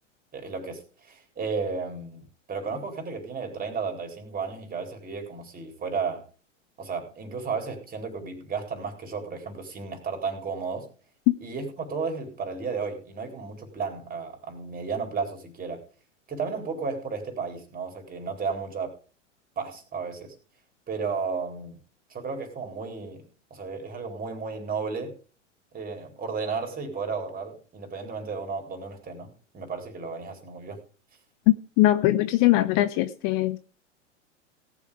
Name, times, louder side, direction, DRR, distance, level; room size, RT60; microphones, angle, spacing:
voice 1, 0.3-6.3 6.8-10.9 11.4-15.8 16.3-18.9 19.6-20.3 20.9-21.8 22.1-25.2 25.7-30.8, right 5 dB, 25° right, 4.5 m, -33 dB
voice 2, 31.5-33.6, left 15 dB, 40° left, 0.9 m, -21 dB
18.0 x 7.4 x 5.1 m
figure-of-eight pair, 95°, 38 cm